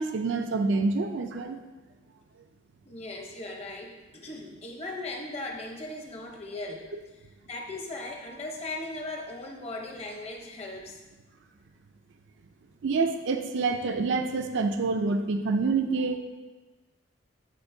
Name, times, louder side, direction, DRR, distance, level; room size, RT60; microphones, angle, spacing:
voice 1, 0.0-1.6 12.8-16.2, right 3 dB, 65° right, 6 dB, 0.4 m, -27 dB
voice 2, 2.8-6.9 7.4-11.0, left 2 dB, 30° left, 1 dB, 0.8 m, -38 dB
13.0 x 4.3 x 2.7 m, 1.2 s
head